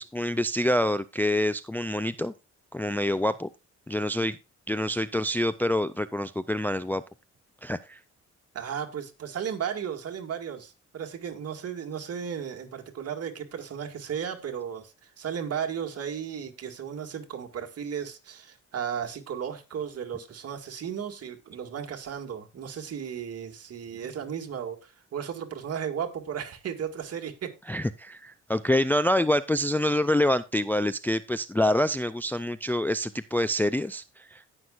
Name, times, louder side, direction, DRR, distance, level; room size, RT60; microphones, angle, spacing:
voice 1, 0.0-2.3 2.7-3.5 3.9-4.4 4.7-7.0 7.6-8.0 27.7-34.5, left 1 dB, 5° left, 0.4 m, -26 dB
voice 2, 8.5-27.5, right 8 dB, 55° right, 2.1 m, -35 dB
17.0 x 6.2 x 2.5 m
cardioid pair, 90°, 30 cm